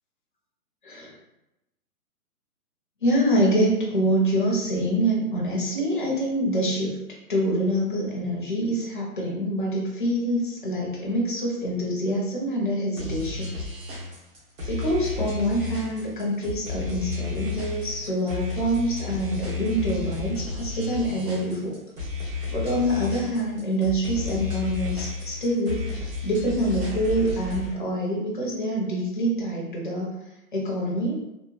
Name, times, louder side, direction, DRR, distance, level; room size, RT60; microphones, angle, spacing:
voice 1, 3.0-6.9 7.3-13.5 14.7-21.8 22.5-30.1 30.5-31.2, equal, 35° left, -4 dB, 0.4 m, -25 dB
sound 1, 13.0-27.7, left 4 dB, 55° right, 1.0 m, -32 dB
2.8 x 2.1 x 2.4 m, 0.92 s
hypercardioid pair, 170°, 46 cm